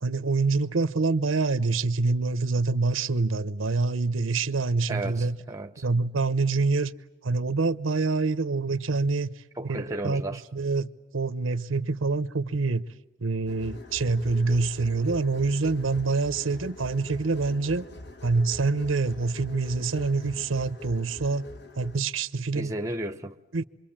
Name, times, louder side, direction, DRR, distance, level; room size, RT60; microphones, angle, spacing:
voice 1, 0.0-5.4 5.8-6.9 7.2-12.8 13.2-17.8 18.2-21.4 21.8-22.7 23.5-23.6, right 3 dB, 85° right, 0.9 m, -26 dB
voice 2, 4.9-5.8 9.6-10.4 22.5-23.4, right 1 dB, 15° right, 0.9 m, -34 dB
sound 1, 13.5-22.0, left 2 dB, 55° left, 1.3 m, -43 dB
27.0 x 23.0 x 8.8 m
head